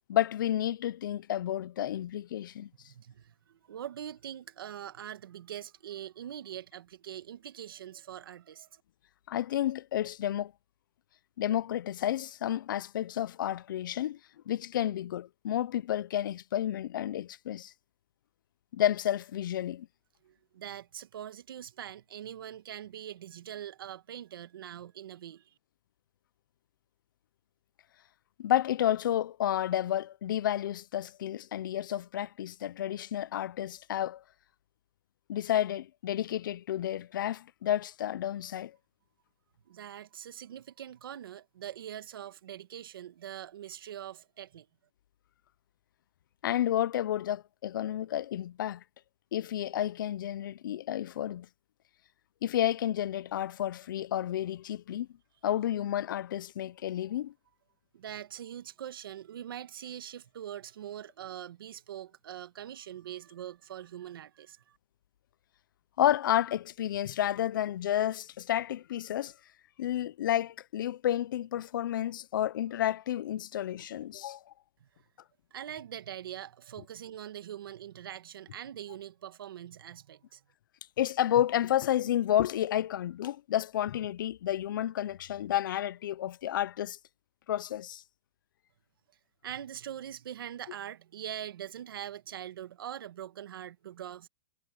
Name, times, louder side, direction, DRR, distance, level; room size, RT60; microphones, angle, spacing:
voice 1, 0.1-2.7 9.3-10.5 11.4-14.2 14.5-17.7 18.7-19.9 28.4-34.2 35.3-38.8 46.4-48.8 49.3-51.5 52.4-55.1 55.4-57.3 66.0-69.3 69.8-74.4 81.0-87.0 87.5-88.0, left 11 dB, 65° left, 0.5 m, -31 dB
voice 2, 2.8-8.8 20.2-25.5 39.7-44.7 57.9-64.8 74.8-74.9 75.5-80.4 89.4-94.3, right 10 dB, 80° right, 1.8 m, -43 dB
supercardioid pair, 175°, 12 cm